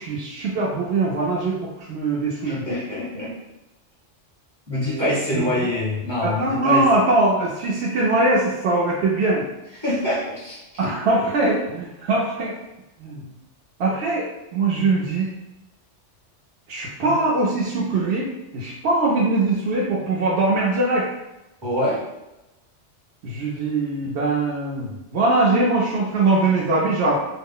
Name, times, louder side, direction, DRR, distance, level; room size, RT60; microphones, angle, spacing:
voice 1, 0.0-2.8 4.8-5.7 6.2-9.5 10.8-12.5 13.0-13.3 13.8-14.3 14.5-15.3 16.7-21.1 23.2-27.2, right 2 dB, 70° right, -5 dB, 0.8 m, -22 dB
voice 2, 2.4-3.3 4.7-6.9 9.8-10.8 17.0-17.2 21.6-22.0, left 1 dB, 25° right, -8 dB, 0.9 m, -25 dB
2.3 x 2.0 x 3.6 m, 0.95 s
omnidirectional pair, 1.2 m